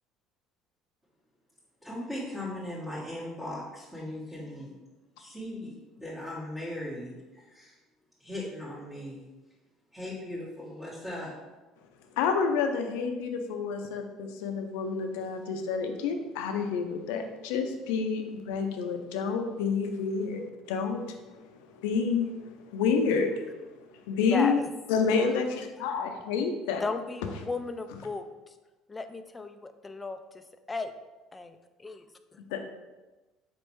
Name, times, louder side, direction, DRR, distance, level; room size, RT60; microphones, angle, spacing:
voice 1, 1.8-4.7 5.2-7.8 8.2-9.2 9.9-11.3, left 1 dB, 15° right, -11 dB, 1.5 m, -38 dB
voice 2, 12.2-24.6 24.9-26.8 32.4-32.6, left 5 dB, 80° left, 5 dB, 0.5 m, -29 dB
voice 3, 24.3-24.7 26.8-28.5 28.9-30.9 31.3-32.1 32.3-32.4, left 3 dB, 20° left, 9 dB, 0.4 m, -36 dB
4.2 x 3.2 x 3.1 m, 1.2 s
supercardioid pair, 80°, 0 cm